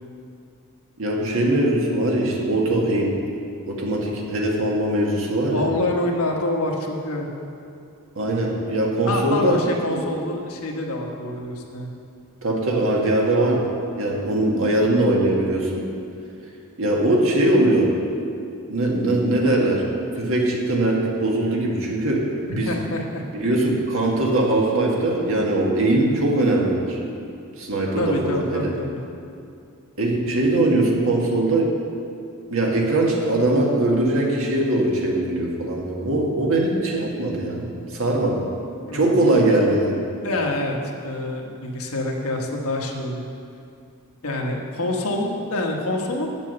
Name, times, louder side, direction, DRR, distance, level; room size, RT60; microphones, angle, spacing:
voice 1, 1.0-3.2 3.7-5.7 8.1-9.6 9.9-10.0 12.4-13.7 14.0-15.9 16.8-17.9 18.7-19.8 20.2-22.3 22.6-22.8 23.3-27.0 27.6-28.7 30.0-31.7 32.5-38.4 38.9-40.0, right 1 dB, 65° right, -1 dB, 1.6 m, -21 dB
voice 2, 5.5-7.3 9.0-11.9 22.5-23.3 28.0-29.0 38.9-39.3 40.2-40.8 41.0-43.2 44.2-46.4, left 1 dB, 70° left, 1 dB, 1.3 m, -26 dB
9.0 x 7.2 x 6.8 m, 2.5 s
head